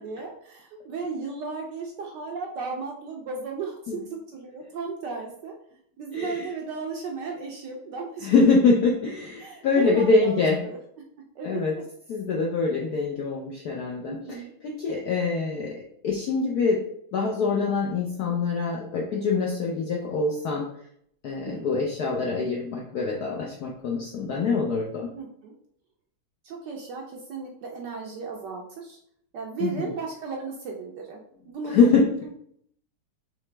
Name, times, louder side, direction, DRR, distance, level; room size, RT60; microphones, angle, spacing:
voice 1, 0.0-5.5 6.0-8.4 9.4-10.8 11.4-11.6 14.0-14.5 21.5-21.7 25.1-25.5 26.4-29.0 29.3-31.2 31.5-32.0, right 4 dB, 70° right, 0 dB, 1.1 m, -35 dB
voice 2, 6.1-6.5 8.2-10.6 11.4-11.8 12.1-14.4 14.6-16.8 17.1-20.7 21.2-25.1 29.6-29.9 31.6-32.1, left 4 dB, 75° left, -1 dB, 0.9 m, -24 dB
5.0 x 3.2 x 3.3 m, 0.68 s
omnidirectional pair, 2.4 m